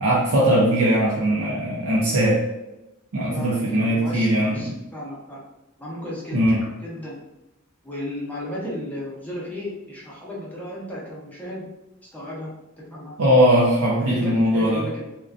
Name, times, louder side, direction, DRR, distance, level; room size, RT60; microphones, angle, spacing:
voice 1, 0.0-2.4 3.1-4.8 6.3-6.6 13.2-14.8, equal, 75° right, -5 dB, 0.5 m, -20 dB
voice 2, 3.3-5.4 5.8-7.2 7.8-11.7 12.1-12.5 12.9-13.2 14.0-15.1, left 1 dB, 5° left, -6 dB, 0.6 m, -34 dB
2.4 x 2.1 x 2.4 m, 0.95 s
head